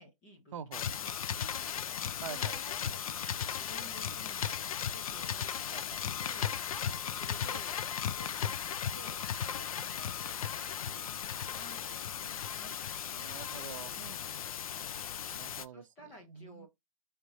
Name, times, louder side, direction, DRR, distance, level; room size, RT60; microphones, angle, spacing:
voice 1, 0.0-1.7 2.3-3.0 3.6-6.5 6.9-7.8 8.2-12.7 13.9-14.3 15.7-16.7, equal, 10° left, 0.5 m, -53 dB
voice 2, 0.5-0.9 2.2-2.6 5.7-6.0 13.1-13.9 15.3-16.7, right 8 dB, 65° right, 0.6 m, -46 dB
sound 1, 0.7-15.6, left 8 dB, 85° left, 0.5 m, -36 dB
3.6 x 3.3 x 4.0 m
hypercardioid pair, 180°, 18 cm